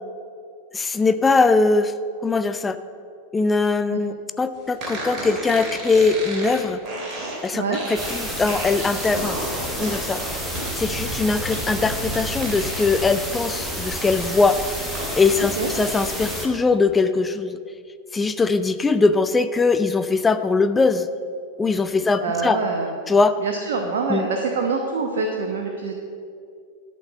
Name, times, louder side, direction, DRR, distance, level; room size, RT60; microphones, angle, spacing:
voice 1, 0.7-1.9 2.2-2.8 3.3-6.8 7.4-9.4 9.8-10.2 10.8-14.6 15.1-17.6 18.1-21.1 21.6-22.6 23.1-23.4 24.1-24.3, left 4 dB, 15° left, 11 dB, 0.4 m, -21 dB
sound 1, 4.8-13.1 13.5-15.1, right 1 dB, 30° right, 2.3 m, -33 dB
sound 2, 8.0-16.5, equal, 5° right, 1.3 m, -30 dB
voice 2, 15.4-15.7 22.0-22.9 23.4-25.9, right 4 dB, 60° right, 2 dB, 0.8 m, -25 dB
12.0 x 4.3 x 6.5 m, 2.3 s
figure-of-eight pair, 90°, 0 cm